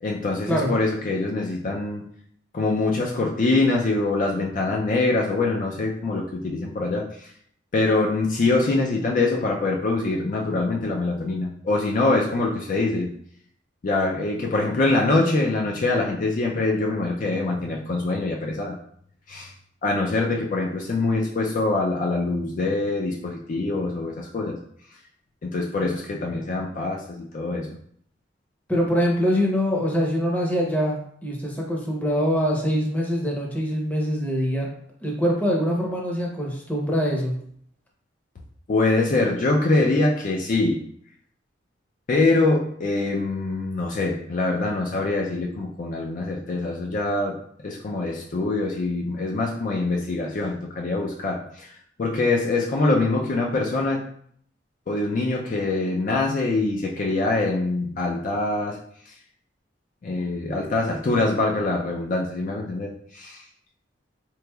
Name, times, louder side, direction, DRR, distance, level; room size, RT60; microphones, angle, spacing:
voice 1, 0.0-2.0 2.5-7.3 7.7-13.1 13.8-18.8 19.3-19.5 19.8-24.6 25.4-27.7 38.7-40.8 42.1-47.4 47.6-51.7 52.0-54.0 54.9-58.8 59.1-59.2 60.0-63.4, left 2 dB, 45° left, -1 dB, 0.4 m, -24 dB
voice 2, 28.7-34.7 35.0-37.3, equal, 10° left, -1 dB, 0.7 m, -24 dB
3.8 x 3.0 x 2.3 m, 0.64 s
head